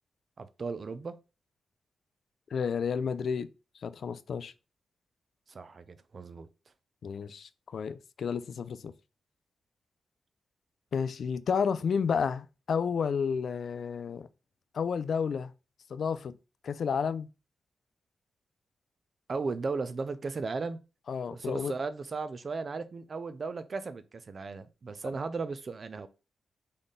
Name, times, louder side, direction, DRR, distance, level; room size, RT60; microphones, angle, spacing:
voice 1, 0.4-1.2 5.5-6.5 19.3-20.8 21.3-26.1, right 4 dB, 35° right, 0.4 m, -36 dB
voice 2, 2.5-3.5 3.8-4.5 7.0-8.9 10.9-14.3 14.7-15.5 15.9-16.4 16.6-17.3 21.1-21.7, left 6 dB, 60° left, 0.3 m, -31 dB
4.1 x 3.4 x 3.7 m
wide cardioid pair, 150°, 0 cm